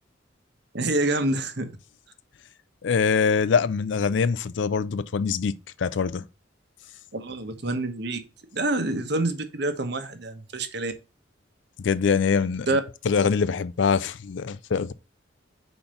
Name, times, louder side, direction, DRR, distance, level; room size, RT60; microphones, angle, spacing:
voice 1, 0.7-1.7 7.1-8.2 8.5-10.9 12.7-12.8, right 2 dB, 60° right, 1.1 m, -27 dB
voice 2, 2.8-6.2 11.8-12.7 13.1-14.9, left 5 dB, 65° left, 0.4 m, -24 dB
5.1 x 4.4 x 5.5 m
head